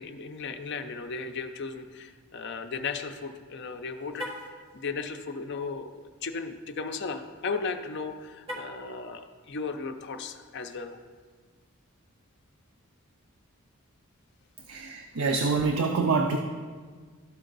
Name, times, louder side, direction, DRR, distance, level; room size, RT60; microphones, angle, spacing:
voice 1, 0.0-4.3 4.7-11.0, left 4 dB, 50° left, 7 dB, 0.5 m, -36 dB
Car, 4.1-4.6 8.4-8.9, equal, 25° right, 1.5 m, -38 dB
voice 2, 14.7-16.4, right 4 dB, 75° right, 3 dB, 0.5 m, -26 dB
12.5 x 4.5 x 3.9 m, 1.5 s
head